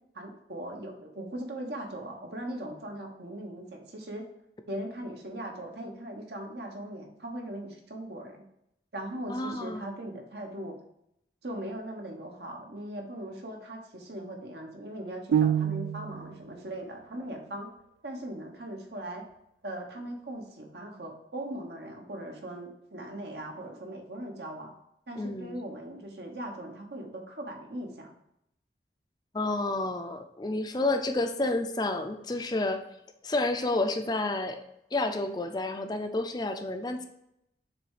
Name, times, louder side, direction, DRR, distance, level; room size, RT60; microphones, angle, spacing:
voice 1, 0.1-4.2 4.7-8.4 8.9-10.7 11.4-17.7 18.0-19.2 19.6-24.7 25.1-28.1, right 1 dB, 70° right, 2 dB, 1.2 m, -39 dB
voice 2, 9.3-9.9 25.2-25.6 29.3-32.8 33.2-34.6 34.9-37.0, left 2 dB, 25° left, 7 dB, 0.4 m, -30 dB
sound 1, 15.3-16.3, right 9 dB, 90° right, 0.3 m, -26 dB
6.8 x 3.3 x 4.9 m, 0.79 s
head